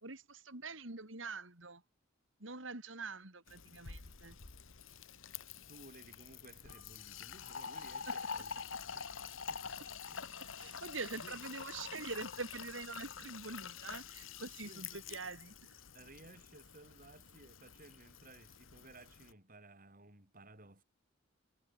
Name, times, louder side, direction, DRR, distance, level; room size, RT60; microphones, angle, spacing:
voice 1, 0.0-1.8 2.4-4.4 8.1-8.2 9.8-9.9 10.2-15.8, right 3 dB, 70° right, 3.8 m, -45 dB
Fill (with liquid), 3.5-19.3, left 6 dB, 80° left, 1.6 m, -47 dB
voice 2, 5.6-9.1 9.5-9.7 10.1-11.4 14.6-15.2 15.9-20.8, right 2 dB, 45° right, 5.9 m, -58 dB
head